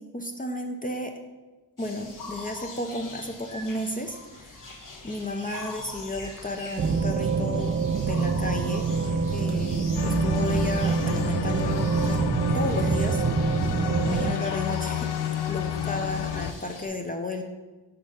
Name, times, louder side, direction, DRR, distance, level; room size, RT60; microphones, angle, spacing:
voice 1, 0.1-1.1 1.8-4.6 5.0-7.7 8.0-8.8 9.3-12.2 12.5-13.2 14.1-17.4, left 1 dB, 20° left, 3 dB, 0.6 m, -33 dB
sound 1, 1.8-16.9, left 3 dB, 45° left, 1.2 m, -43 dB
sound 2, 6.8-14.3, right 5 dB, 30° right, 0.3 m, -25 dB
sound 3, 10.0-16.5, left 9 dB, 70° left, 0.5 m, -31 dB
5.0 x 4.3 x 5.2 m, 1.2 s
cardioid pair, 70°, 43 cm